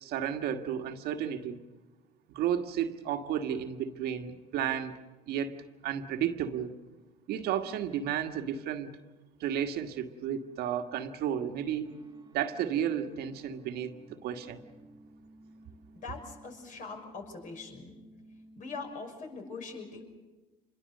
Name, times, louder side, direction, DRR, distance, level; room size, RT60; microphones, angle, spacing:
voice 1, 0.0-1.6 2.3-4.9 5.3-5.6 5.8-6.8 7.3-8.9 9.4-11.9 12.3-14.7, right 9 dB, 60° right, 6 dB, 1.6 m, -32 dB
sound 1, 11.8-18.9, right 2 dB, 20° right, 2.0 m, -54 dB
voice 2, 15.9-18.0 18.5-20.0, left 4 dB, 45° left, 4 dB, 6.2 m, -42 dB
26.5 x 22.0 x 6.7 m, 1.2 s
hypercardioid pair, 75°, 18 cm